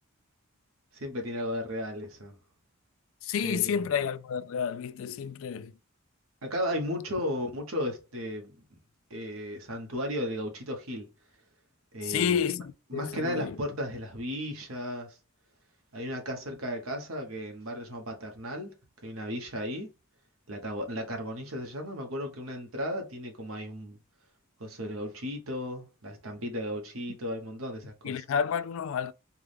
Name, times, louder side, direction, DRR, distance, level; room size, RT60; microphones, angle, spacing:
voice 1, 0.9-2.4 3.4-3.8 6.4-8.8 9.1-11.1 11.9-12.5 12.9-15.2 15.9-18.7 19.0-19.9 20.5-24.0 24.6-28.2, equal, 80° right, 1.1 m, -35 dB
voice 2, 3.2-5.7 12.0-13.6 28.0-29.1, left 7 dB, 70° left, 0.3 m, -30 dB
4.7 x 2.3 x 3.3 m
head